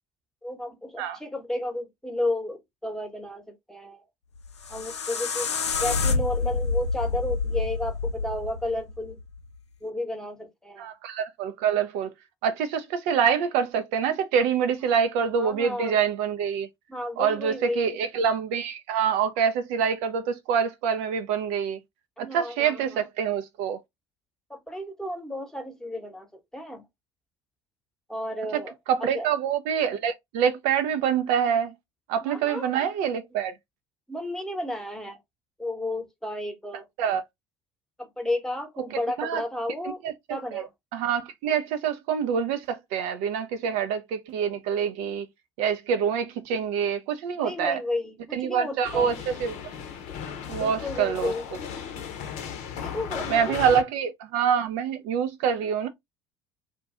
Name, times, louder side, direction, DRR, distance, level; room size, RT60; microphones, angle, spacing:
voice 1, 0.4-4.1 4.7-5.5 5.8-9.2 9.8-10.9 15.4-16.0 16.9-18.0 22.2-23.0 24.5-26.9 28.1-29.3 32.2-32.8 34.1-35.2 35.6-36.9 38.0-40.0 40.3-40.7 47.4-49.1 50.6-51.5 52.8-53.8, left 1 dB, 5° left, 0.9 m, -32 dB
sound 1, 4.4-9.5, left 4 dB, 90° left, 0.4 m, -28 dB
voice 2, 10.8-12.1 12.4-16.7 17.2-21.8 22.2-23.8 28.9-31.7 32.1-33.5 37.0-37.2 39.2-39.4 40.0-40.1 40.5-40.6 40.9-45.3 45.6-47.8 48.3-49.5 50.5-51.3 53.3-55.9, right 7 dB, 60° right, 0.4 m, -26 dB
sound 2, 48.8-53.8, left 8 dB, 55° left, 0.7 m, -36 dB
2.5 x 2.2 x 3.5 m
figure-of-eight pair, 60°, 14 cm